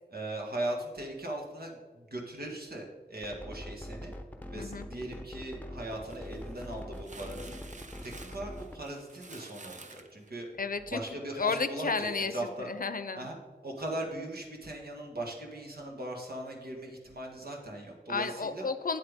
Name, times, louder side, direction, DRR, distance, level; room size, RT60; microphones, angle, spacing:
voice 1, 0.1-4.1 4.5-7.5 8.0-10.5 10.9-12.7 13.2-13.4 13.6-18.7, right 1 dB, 70° right, 0 dB, 1.8 m, -39 dB
sound 1, 3.2-8.8, left 1 dB, 10° left, 0.9 m, -43 dB
voice 2, 4.6-4.9 10.6-11.0 11.4-13.3 18.1-19.0, left 4 dB, 60° left, 12 dB, 0.6 m, -32 dB
sound 2, 5.9-11.0, right 3 dB, 45° right, 0.8 m, -51 dB
8.9 x 7.8 x 3.6 m, 1.4 s
cardioid pair, 45°, 17 cm